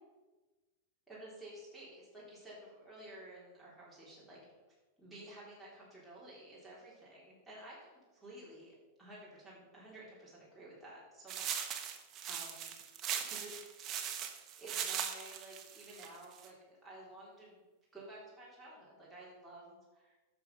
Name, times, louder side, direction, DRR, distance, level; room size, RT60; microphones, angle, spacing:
voice 1, 1.1-4.4 5.0-11.7 12.3-12.7 13.0-13.8 14.6-16.6 16.8-17.6 17.9-20.1, right 1 dB, ahead, -8 dB, 3.4 m, -52 dB
sound 1, 11.3-16.5, right 8 dB, 35° right, 1.1 m, -40 dB
9.3 x 6.5 x 5.4 m, 1.2 s
hypercardioid pair, 130°, 0 cm